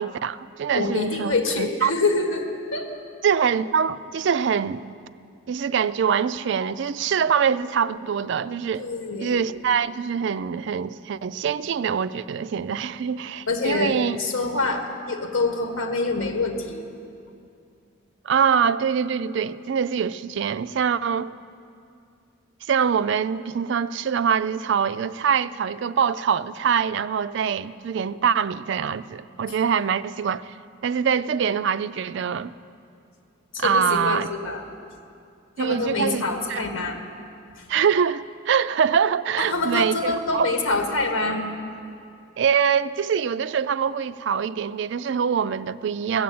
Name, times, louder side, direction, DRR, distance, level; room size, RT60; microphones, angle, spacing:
voice 1, 0.0-1.9 3.2-4.8 5.5-8.8 9.2-14.2 18.2-21.3 22.7-30.5 30.8-32.5 33.6-34.3 35.6-36.2 36.5-36.6 37.7-40.5 42.4-46.2, right 7 dB, 60° right, 0.3 m, -24 dB
voice 2, 0.7-2.4 2.7-2.9 8.8-9.4 12.7-12.8 13.5-16.8 33.5-34.6 35.6-37.0 37.6-37.7 39.4-41.4, left 3 dB, 80° left, 1.7 m, -26 dB
15.5 x 7.3 x 8.5 m
head